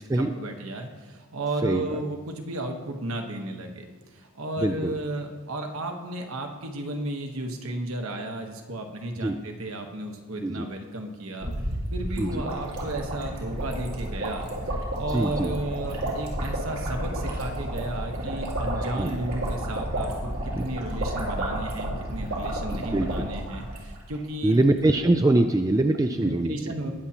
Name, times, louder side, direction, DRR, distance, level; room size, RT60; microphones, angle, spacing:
voice 1, 0.0-11.5 11.9-14.5 15.0-24.5 25.2-25.4 26.1-26.9, right 1 dB, 65° right, 3 dB, 1.2 m, -34 dB
voice 2, 4.6-4.9 9.2-9.4 10.4-10.7 12.2-12.4 15.1-15.5 18.8-19.1 20.6-20.7 22.8-23.3 24.4-26.5, right 2 dB, 15° right, 7 dB, 0.3 m, -23 dB
sound 1, 11.4-24.2 24.5-24.6 24.8-25.0, right 1 dB, 80° right, 3.0 m, -31 dB
19.5 x 7.2 x 2.9 m, 1.3 s
head